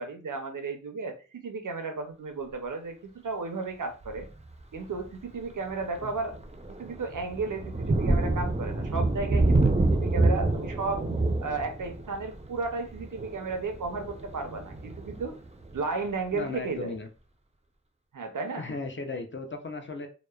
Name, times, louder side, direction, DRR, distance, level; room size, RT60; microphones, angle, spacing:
voice 1, 0.0-4.3 4.7-6.3 6.7-11.0 11.4-15.3 15.7-17.0 18.1-18.7, right 3 dB, 85° right, 5 dB, 0.5 m, -34 dB
Thunder, 4.0-4.3 4.9-5.1 5.5-16.1, right 2 dB, 20° right, 0.4 m, -28 dB
voice 2, 16.3-17.1 18.6-20.1, left 3 dB, 40° left, 5 dB, 0.5 m, -36 dB
2.8 x 2.0 x 2.2 m, 0.35 s
wide cardioid pair, 45°, 31 cm